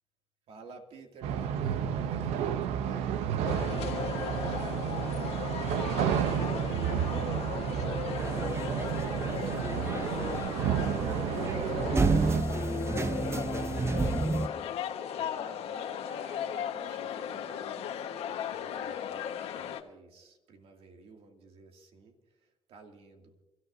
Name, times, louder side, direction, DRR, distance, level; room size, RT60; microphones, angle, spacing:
voice 1, 0.5-5.3 15.1-23.3, right 4 dB, 70° right, 3 dB, 2.5 m, -51 dB
sound 1, 1.2-12.4, right 8 dB, 90° right, 0.7 m, -31 dB
sound 2, 3.4-19.8, left 9 dB, 80° left, 1.3 m, -37 dB
voice 2, 6.0-12.1 12.4-14.7, left 5 dB, 35° left, 6 dB, 1.5 m, -43 dB
sound 3, 8.2-14.5, right 3 dB, 25° right, 0.8 m, -31 dB
29.5 x 14.0 x 2.7 m, 1.1 s
supercardioid pair, 75°, 10 cm